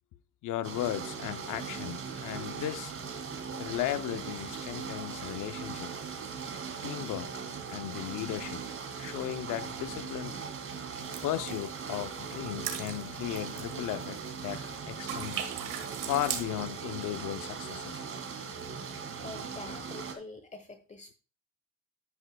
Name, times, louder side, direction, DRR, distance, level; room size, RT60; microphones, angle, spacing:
voice 1, 0.4-2.9 3.6-5.9 6.8-7.3 7.7-8.7 9.0-10.4 11.2-15.5 16.0-18.1, left 13 dB, 90° left, 0.7 m, -36 dB
sound 1, 0.6-20.1, right 6 dB, 45° right, 2.0 m, -39 dB
sound 2, 11.0-14.7 15.1-16.4, right 9 dB, 85° right, 1.7 m, -40 dB
voice 2, 19.2-21.1, left 3 dB, 25° left, 1.1 m, -45 dB
11.5 x 9.5 x 2.3 m
cardioid pair, 90°, 30 cm